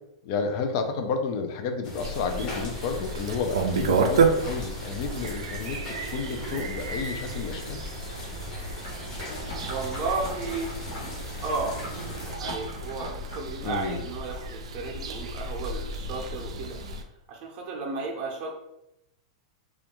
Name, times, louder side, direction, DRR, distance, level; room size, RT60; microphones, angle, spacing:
voice 1, 0.2-7.8 13.6-14.0, left 5 dB, 50° left, 6 dB, 0.4 m, -31 dB
sound 1, 1.8-12.3, left 1 dB, 30° left, 0.8 m, -40 dB
sound 2, 2.0-17.0, right 4 dB, 90° right, 0.3 m, -31 dB
sound 3, 8.8-13.5 13.8-13.9, equal, 90° left, 1.2 m, -42 dB
voice 2, 9.7-10.7 11.4-11.7 12.0-16.8 17.3-18.5, right 3 dB, 40° right, -1 dB, 0.6 m, -33 dB
2.4 x 2.1 x 2.9 m, 0.85 s
hypercardioid pair, 135°, 3 cm